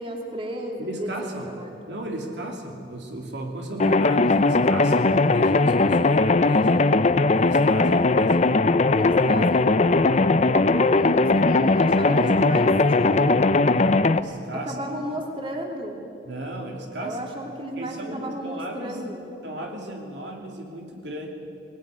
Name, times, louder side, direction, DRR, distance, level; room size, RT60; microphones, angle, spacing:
voice 1, 0.0-1.7 8.9-9.7 10.5-13.4 14.6-16.0 17.0-19.2, right 1 dB, 30° right, 1 dB, 3.1 m, -33 dB
voice 2, 0.8-1.5 1.9-6.8 7.3-8.5 8.9-9.2 9.8-10.7 11.4-11.7 12.0-12.7 13.2-14.8 16.2-17.2 17.7-19.0 19.4-21.3, right 1 dB, 70° right, 1 dB, 2.8 m, -35 dB
sound 1, 3.8-14.2, left 3 dB, 40° left, 0.6 m, -19 dB
21.0 x 18.5 x 9.8 m, 2.5 s
head